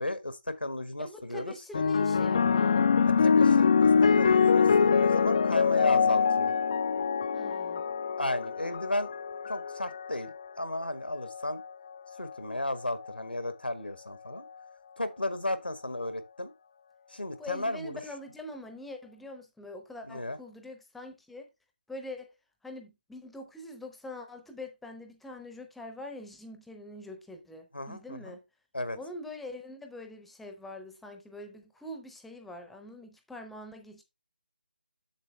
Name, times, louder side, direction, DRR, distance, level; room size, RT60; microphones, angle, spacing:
voice 1, 0.0-2.0 3.0-6.5 8.2-9.1 9.5-11.6 12.2-14.4 15.0-16.5 17.1-18.0 20.1-20.4 27.7-28.4 28.7-29.0, left 1 dB, 80° left, 1.5 m, -34 dB
voice 2, 1.0-2.8 7.3-7.8 17.4-21.5 21.9-22.3 22.6-28.4 28.9-34.0, left 1 dB, ahead, 0.7 m, -44 dB
sound 1, 1.7-10.3 11.2-11.6, left 6 dB, 35° left, 0.4 m, -24 dB
7.3 x 7.2 x 3.2 m
figure-of-eight pair, 155°, 5 cm